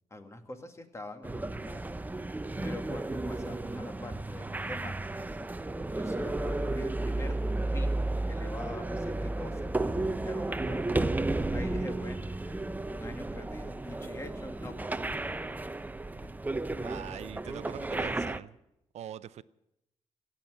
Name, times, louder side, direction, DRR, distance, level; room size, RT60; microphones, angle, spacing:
voice 1, 0.1-1.8 2.6-5.3 5.9-7.4 7.7-7.9 8.3-9.7 10.2-11.0 11.5-15.2, left 2 dB, 25° left, 2.2 m, -45 dB
sound 1, 1.2-18.4, right 2 dB, 15° right, 0.7 m, -33 dB
voice 2, 16.8-18.6 18.9-19.4, right 11 dB, 70° right, 0.5 m, -43 dB
16.5 x 7.5 x 9.6 m
cardioid pair, 70°, 12 cm